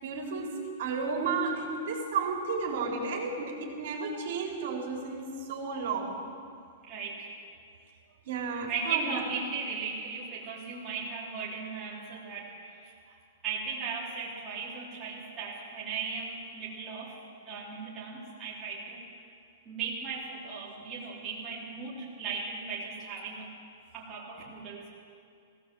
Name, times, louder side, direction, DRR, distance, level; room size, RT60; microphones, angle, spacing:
voice 1, 0.0-6.2 8.3-9.2, right 4 dB, 55° right, -1 dB, 4.0 m, -33 dB
voice 2, 6.8-7.3 8.7-13.2 13.4-19.0 19.6-23.5 23.9-24.9, right 5 dB, 15° right, -8 dB, 3.5 m, -37 dB
20.5 x 17.5 x 7.7 m, 2.4 s
hypercardioid pair, 175°, 0 cm